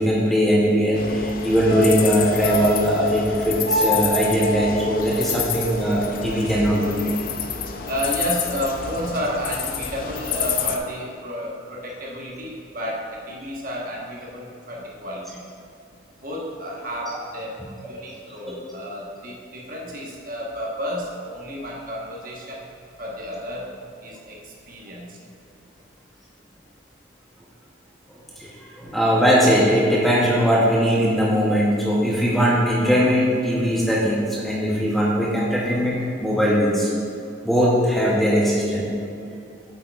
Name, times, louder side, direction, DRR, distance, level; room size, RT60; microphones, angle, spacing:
voice 1, 0.0-7.0 18.4-18.6 28.4-28.5 28.8-36.9 37.4-38.9, equal, ahead, -5 dB, 0.7 m, -20 dB
sound 1, 0.9-10.8, left 7 dB, 50° left, 0.4 m, -29 dB
sound 2, 1.7-6.1 6.4-6.5, right 1 dB, 70° left, 1.1 m, -28 dB
voice 2, 7.8-15.5 16.2-22.7 23.0-23.7 24.0-25.2, equal, 45° right, -3 dB, 1.1 m, -31 dB
8.3 x 8.1 x 2.4 m, 2.5 s
head